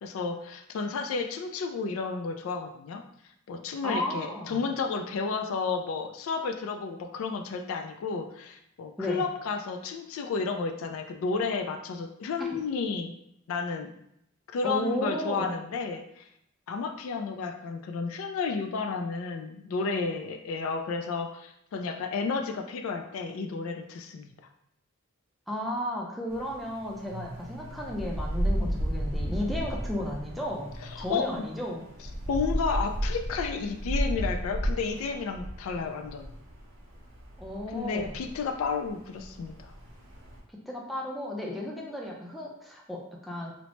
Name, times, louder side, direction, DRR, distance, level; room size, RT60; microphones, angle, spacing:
voice 1, 0.0-3.0 3.5-13.1 13.5-13.9 14.5-16.3 16.7-24.3 30.9-31.5 32.3-36.3 37.7-39.7, left 4 dB, 75° left, 5 dB, 0.3 m, -32 dB
voice 2, 3.8-4.7 9.0-9.2 12.4-12.5 14.6-15.5 25.5-31.8 37.4-38.1 40.7-43.5, equal, ahead, -2 dB, 0.4 m, -34 dB
sound 1, 26.3-40.4, equal, 70° right, 0.6 m, -34 dB
2.8 x 2.1 x 3.0 m, 0.75 s
head